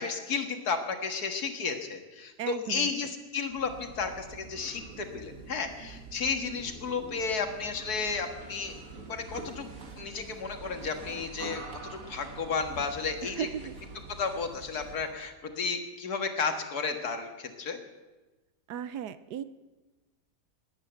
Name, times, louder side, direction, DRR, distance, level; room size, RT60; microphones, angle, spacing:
voice 1, 0.0-8.8 9.1-9.7 10.0-11.6 11.9-13.5 14.1-17.8, left 5 dB, 60° left, 5 dB, 2.1 m, -33 dB
voice 2, 2.4-2.9 13.2-13.7 18.7-19.4, right 9 dB, 75° right, 14 dB, 1.2 m, -36 dB
sound 1, 3.5-15.2, right 3 dB, 50° right, 2.1 m, -46 dB
20.5 x 8.8 x 7.8 m, 1.2 s
omnidirectional pair, 1.9 m